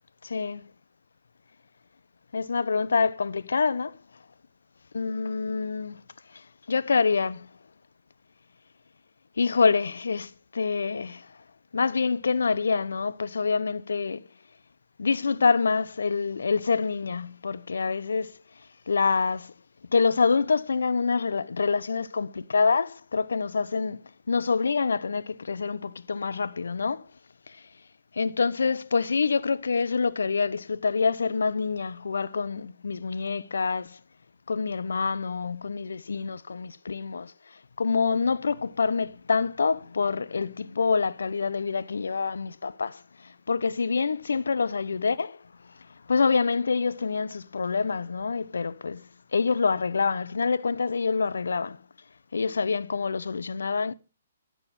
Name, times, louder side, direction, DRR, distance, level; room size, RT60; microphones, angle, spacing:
voice 1, 2.3-3.9 4.9-6.0 6.7-7.5 9.4-11.2 11.7-14.2 15.0-18.3 18.9-19.5 19.9-24.0 24.3-27.0 28.2-34.0 34.5-37.3 37.8-43.0 43.5-45.3 46.1-49.0 49.3-51.8 52.3-53.9, left 5 dB, 75° left, 0.9 m, -26 dB
15.0 x 6.7 x 7.7 m
figure-of-eight pair, 130°, 0 cm